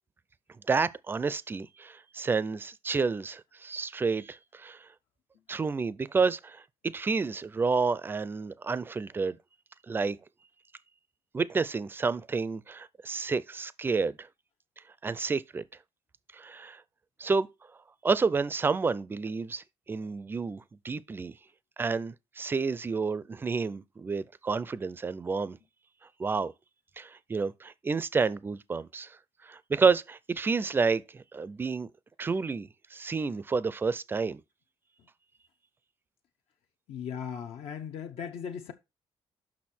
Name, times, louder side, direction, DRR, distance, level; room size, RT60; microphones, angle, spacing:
voice 1, 0.7-4.8 5.5-6.6 6.9-9.4 9.9-10.2 11.3-14.3 15.0-15.6 16.3-16.8 17.2-17.5 18.0-21.3 21.8-25.6 26.2-26.5 27.0-29.1 29.5-31.9 32.2-34.4, right 4 dB, 20° right, 0.4 m, -30 dB
voice 2, 36.9-38.7, left 7 dB, 70° left, 0.7 m, -37 dB
6.4 x 5.9 x 4.3 m
cardioid pair, 145°, 10 cm